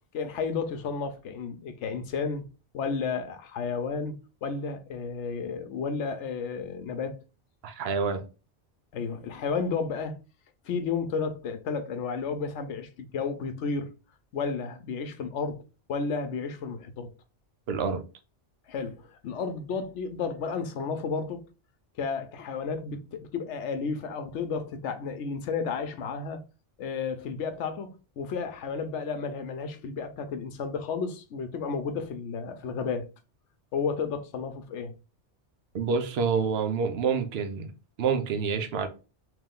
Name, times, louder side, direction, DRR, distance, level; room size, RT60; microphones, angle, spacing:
voice 1, 0.1-2.4 2.7-7.2 8.9-10.2 10.7-13.9 14.3-15.6 15.9-17.1 18.7-21.4 22.0-26.4 26.8-33.1 33.7-34.9, left 5 dB, 80° left, 1.0 m, -32 dB
voice 2, 7.6-8.2 17.7-18.0 35.7-37.7 38.0-38.9, right 5 dB, 65° right, 0.9 m, -27 dB
3.1 x 2.9 x 3.6 m
omnidirectional pair, 1.2 m